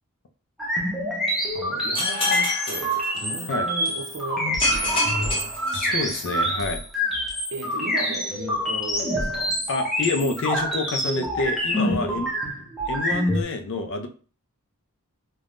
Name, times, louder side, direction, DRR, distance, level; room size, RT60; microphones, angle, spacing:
sound 1, 0.6-13.4, equal, ahead, 0.6 m, -26 dB
voice 1, 1.5-5.5 7.5-9.6 11.7-12.0, right 2 dB, 55° right, 0.6 m, -36 dB
Irregular Glass Clock, 2.0-3.7 4.6-6.4, left 2 dB, 25° left, 0.8 m, -27 dB
voice 2, 5.7-6.8 9.7-12.3 12.9-14.1, left 3 dB, 55° left, 0.4 m, -28 dB
3.4 x 2.1 x 2.4 m
head